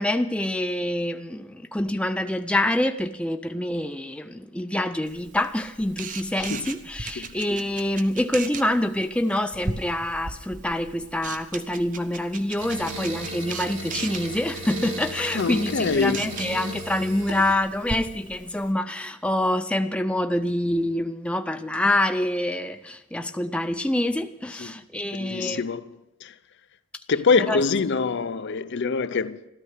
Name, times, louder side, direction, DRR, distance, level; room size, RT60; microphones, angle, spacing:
voice 1, 0.0-25.6 27.5-27.6, left 1 dB, 5° left, 0.4 m, -26 dB
Camera, 5.1-18.7, right 4 dB, 40° right, 0.8 m, -39 dB
voice 2, 6.4-6.7 7.2-7.3 15.3-16.3 24.6-24.7 25.1-26.3 27.1-29.5, left 4 dB, 55° left, 0.5 m, -25 dB
sound 1, 12.6-17.5, right 1 dB, 70° right, 3.2 m, -35 dB
13.5 x 13.0 x 6.5 m
head